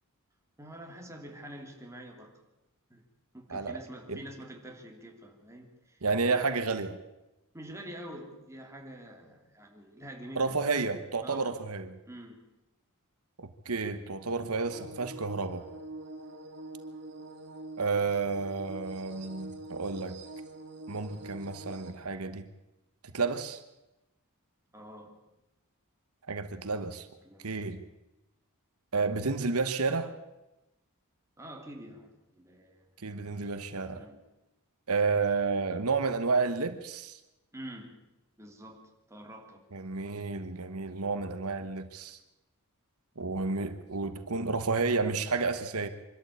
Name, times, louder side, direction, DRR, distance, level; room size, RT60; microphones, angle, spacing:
voice 1, 0.6-2.4 2.9-3.0 3.3-6.5 7.5-10.6 11.2-11.6 12.0-12.4 24.7-25.2 27.2-27.5 31.4-32.9 33.9-34.2 37.5-38.0 38.4-39.6, right 1 dB, 15° right, 1 dB, 2.9 m, -46 dB
voice 2, 6.0-7.0 10.4-11.9 13.4-15.6 17.8-20.2 20.9-22.4 23.1-23.6 26.3-27.1 27.4-27.8 28.9-30.1 33.0-34.1 34.9-37.2 39.7-42.2 43.2-45.9, right 4 dB, 80° right, 10 dB, 1.2 m, -31 dB
sound 1, 14.7-21.9, right 2 dB, 55° right, 2.5 m, -45 dB
24.5 x 13.0 x 8.4 m, 0.99 s
head